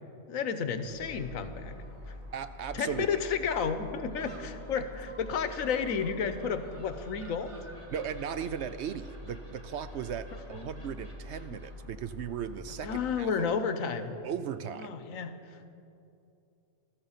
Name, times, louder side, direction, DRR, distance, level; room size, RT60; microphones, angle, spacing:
voice 1, 0.3-1.8 2.1-2.2 2.7-7.6 10.5-10.7 11.5-11.6 12.8-14.1 14.6-15.6, left 6 dB, 85° left, 10 dB, 1.3 m, -32 dB
Gull seagull, 0.8-13.3, left 1 dB, 25° right, 1.5 m, -46 dB
voice 2, 2.3-3.2 7.9-13.5 14.2-14.9, right 8 dB, 65° right, 12 dB, 0.7 m, -37 dB
14.5 x 13.0 x 5.7 m, 2.7 s
omnidirectional pair, 1.4 m